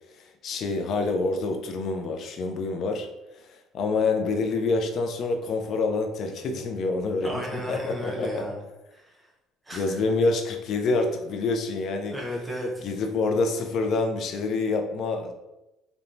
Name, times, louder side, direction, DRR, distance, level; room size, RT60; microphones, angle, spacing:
voice 1, 0.4-3.1 3.4-8.5 9.7-12.2 12.8-15.3, left 3 dB, 50° left, 5 dB, 0.3 m, -27 dB
voice 2, 7.2-8.6 8.9-9.3 9.6-10.0 12.1-12.8, equal, 10° right, -2 dB, 0.6 m, -34 dB
2.5 x 2.1 x 3.0 m, 0.97 s
cardioid pair, 140°, 0 cm